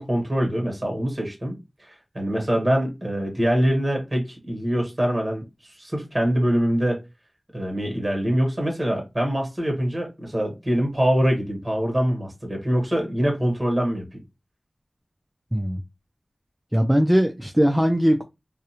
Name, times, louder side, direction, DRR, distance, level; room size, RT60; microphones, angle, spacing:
voice 1, 0.0-1.9 2.1-7.0 7.5-14.2, equal, 30° right, 1.2 m, -24 dB
voice 2, 15.5-15.8 16.7-18.2, equal, 10° right, 0.3 m, -20 dB
2.4 x 2.0 x 2.8 m
wide cardioid pair, 45°, 0 cm